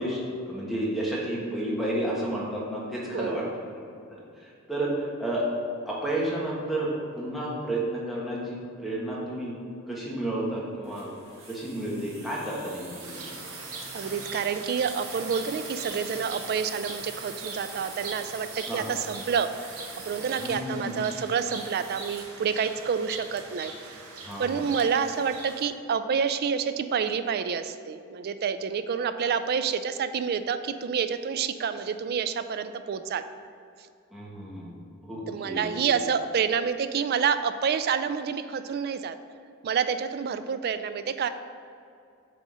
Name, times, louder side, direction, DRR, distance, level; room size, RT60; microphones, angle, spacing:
voice 1, 0.0-3.4 4.1-4.2 4.7-4.9 5.2-5.4 5.9-9.5 9.9-11.1 11.5-13.2 18.7-18.9 20.4-20.9 24.2-24.6 34.1-34.7 35.0-35.7, right 1 dB, ahead, -6 dB, 1.3 m, -31 dB
voice 2, 3.1-3.6 13.9-19.7 20.1-24.0 24.4-33.2 35.3-39.2 39.6-41.3, right 6 dB, 50° right, 11 dB, 0.3 m, -28 dB
sound 1, 10.8-22.4, right 3 dB, 65° right, 1.4 m, -43 dB
sound 2, 13.0-25.7, right 4 dB, 85° right, 0.8 m, -42 dB
7.5 x 3.9 x 4.9 m, 2.5 s
head